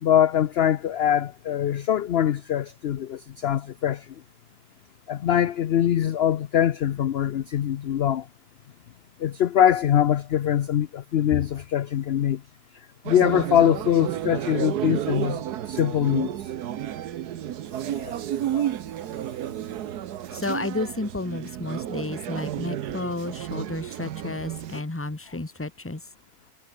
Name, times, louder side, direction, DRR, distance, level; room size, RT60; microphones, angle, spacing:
voice 1, 0.0-4.1 5.1-8.3 9.2-12.4 13.0-16.5 17.8-18.2 18.5-18.7, left 10 dB, 60° left, 0.7 m, -23 dB
sound 1, 13.1-24.8, right 11 dB, 80° right, 1.4 m, -31 dB
voice 2, 20.3-26.0, left 2 dB, 10° left, 1.1 m, -31 dB
omnidirectional pair, 1.7 m